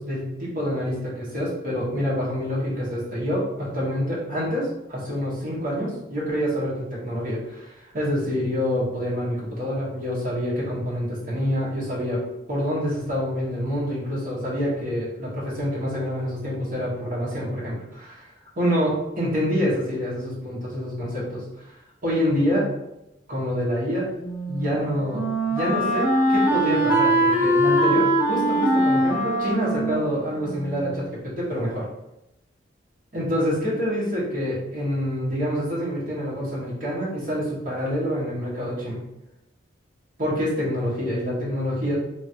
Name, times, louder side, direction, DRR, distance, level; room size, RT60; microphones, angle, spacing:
voice 1, 0.0-12.2 12.5-18.3 18.6-21.4 22.0-22.7 23.3-24.1 24.5-25.2 25.5-31.9 33.1-39.0 40.2-42.0, equal, 50° right, -7 dB, 1.2 m, -26 dB
Wind instrument woodwind instrument, 24.2-31.1, right 1 dB, 5° right, 0.6 m, -22 dB
3.0 x 2.5 x 2.8 m, 0.89 s
head